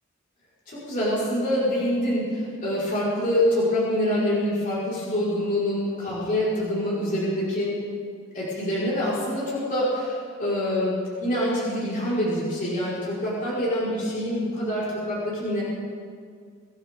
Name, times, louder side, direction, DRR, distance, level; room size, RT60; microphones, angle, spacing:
voice 1, 0.7-7.8 8.3-15.6, left 1 dB, 45° left, -8 dB, 5.1 m, -25 dB
24.5 x 11.5 x 3.8 m, 2.1 s
head